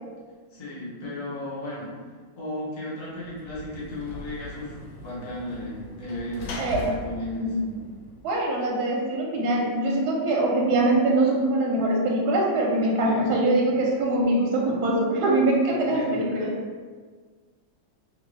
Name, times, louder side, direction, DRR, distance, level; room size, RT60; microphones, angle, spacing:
voice 1, 0.5-1.9 2.4-7.5 13.0-13.4 15.7-16.3, left 1 dB, 40° left, -8 dB, 0.4 m, -35 dB
Sliding door / Slam, 3.2-8.6, left 1 dB, 75° left, 1.2 m, -40 dB
voice 2, 6.6-6.9 7.4-7.5 8.2-16.5, right 2 dB, 70° right, -3 dB, 1.0 m, -23 dB
2.9 x 2.7 x 3.1 m, 1.5 s
omnidirectional pair, 2.1 m